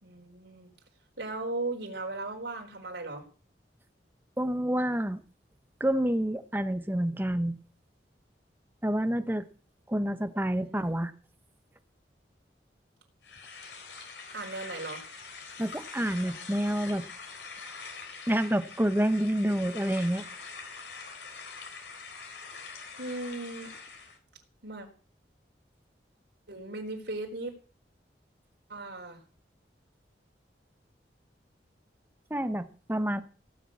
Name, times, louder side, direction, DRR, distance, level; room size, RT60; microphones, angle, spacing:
voice 1, 0.0-0.7 1.2-3.3 10.5-11.0 14.3-15.0 23.0-23.7 24.6-24.9 26.5-27.5 28.7-29.2, right 2 dB, 85° right, 1 dB, 4.2 m, -37 dB
voice 2, 4.4-5.2 5.8-7.5 8.8-9.4 9.9-11.1 15.6-17.1 18.3-20.2 32.3-33.2, right 1 dB, 10° right, 10 dB, 1.0 m, -28 dB
sound 1, 13.2-24.2, left 4 dB, 80° left, 4.3 m, -44 dB
17.5 x 6.9 x 8.6 m, 0.40 s
head